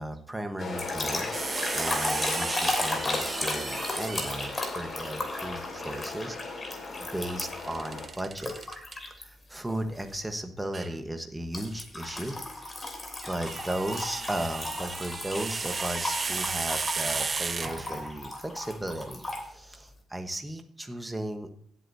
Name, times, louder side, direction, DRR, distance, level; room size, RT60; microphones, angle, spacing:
voice 1, 0.0-1.3 1.7-6.4 7.0-8.6 9.0-12.4 13.3-21.5, right 1 dB, 10° right, 6 dB, 1.2 m, -35 dB
sound 1, 0.6-8.1, left 3 dB, 45° left, 3.4 m, -38 dB
sound 2, 0.8-7.7 8.4-9.2 9.7-10.0 11.5-19.5, left 2 dB, 25° left, 3.1 m, -35 dB
sound 3, 1.3-4.6 7.5-9.0 10.7-10.9 13.0-18.2, right 4 dB, 35° right, 0.7 m, -34 dB
16.5 x 8.0 x 2.7 m, 0.62 s
cardioid pair, 90°, 0 cm